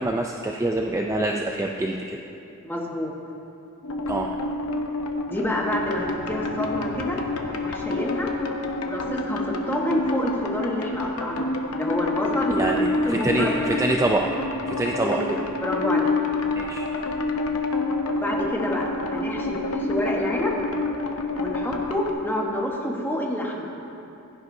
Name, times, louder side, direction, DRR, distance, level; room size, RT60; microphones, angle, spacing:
voice 1, 0.0-2.2 4.1-4.3 12.5-14.3 14.7-15.4 16.6-16.9, right 2 dB, 15° right, 1 dB, 0.4 m, -25 dB
voice 2, 2.6-3.1 5.3-8.3 8.7-13.5 15.1-15.3 15.6-16.1 18.1-20.5 21.4-23.7, left 1 dB, 10° left, -2 dB, 1.1 m, -28 dB
sound 1, 3.8-22.1, left 2 dB, 80° left, 0.9 m, -28 dB
16.0 x 10.5 x 2.7 m, 2.9 s
head